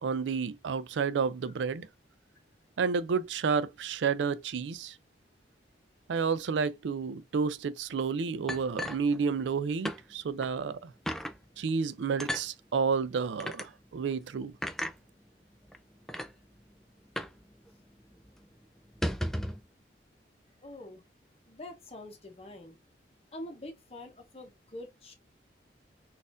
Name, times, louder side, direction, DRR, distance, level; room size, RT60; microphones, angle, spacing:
voice 1, 0.0-1.9 2.8-5.0 6.1-10.9 11.6-14.5, right 5 dB, 85° right, 0.4 m, -30 dB
sound 1, 8.5-9.6 9.8-10.0 10.4-10.5 11.1-11.4 12.2-12.5 13.4-13.7 14.6-15.0 15.7-15.8 16.1-16.3 17.2-17.4 17.7-17.8 18.1-18.3 18.8-19.6, equal, ahead, 0.3 m, -34 dB
voice 2, 20.6-21.0 21.5-22.8 23.3-25.1, left 1 dB, 35° left, 0.9 m, -45 dB
4.1 x 2.5 x 2.5 m
head